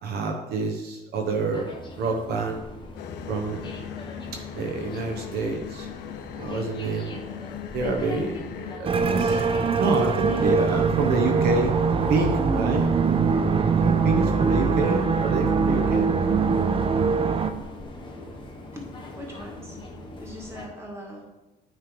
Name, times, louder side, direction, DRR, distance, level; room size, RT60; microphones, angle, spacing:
voice 1, 0.0-1.7 2.0-2.6 3.3-3.8 4.5-5.9 6.3-7.2 7.7-9.4 9.8-11.7 12.1-12.9 13.8-16.1, right 3 dB, 70° right, 2 dB, 1.0 m, -27 dB
sound 1, 1.2-20.7, left 2 dB, 30° left, 1.2 m, -42 dB
sound 2, 3.0-8.8, left 11 dB, 80° left, 0.6 m, -39 dB
sound 3, 8.9-17.5, right 5 dB, 35° right, 0.6 m, -22 dB
voice 2, 18.7-19.8 20.2-21.2, equal, 15° right, -1 dB, 2.0 m, -41 dB
9.1 x 3.4 x 5.2 m, 1.0 s
cardioid pair, 110°, 17 cm